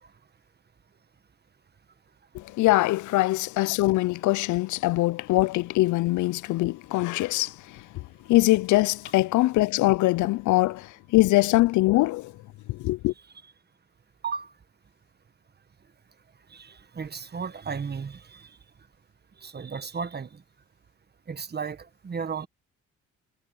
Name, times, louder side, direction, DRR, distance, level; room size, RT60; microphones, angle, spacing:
voice 1, 2.3-12.3 12.7-13.1, left 18 dB, 75° left, 0.5 m, -23 dB
voice 2, 16.5-18.5 19.4-20.4 21.3-22.5, right 6 dB, 35° right, 1.5 m, -34 dB
cardioid pair, 90°, 30 cm